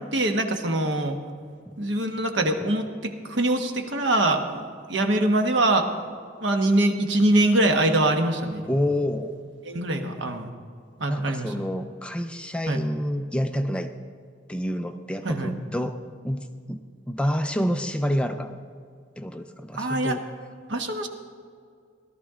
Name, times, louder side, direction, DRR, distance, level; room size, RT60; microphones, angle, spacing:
voice 1, 0.1-1.2 1.8-5.9 6.4-8.6 9.6-10.5 11.0-11.5 12.7-12.8 15.2-15.5 19.7-20.2 20.7-21.1, right 1 dB, 75° right, 5 dB, 1.2 m, -23 dB
voice 2, 8.7-9.4 11.1-13.9 14.5-16.0 16.2-18.6 19.2-20.2, equal, 5° left, 7 dB, 0.4 m, -28 dB
17.5 x 12.5 x 3.7 m, 2.1 s
head